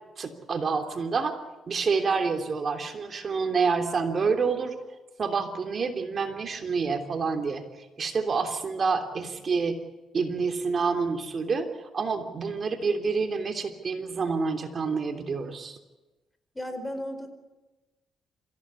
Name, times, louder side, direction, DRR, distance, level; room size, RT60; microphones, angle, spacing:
voice 1, 0.2-1.4 1.7-4.8 5.2-9.8 10.1-15.8, right 5 dB, 45° right, 6 dB, 3.1 m, -28 dB
voice 2, 16.5-17.3, left 1 dB, 10° left, 9 dB, 4.7 m, -34 dB
27.0 x 16.0 x 8.4 m, 1.1 s
cardioid pair, 90°, 0 cm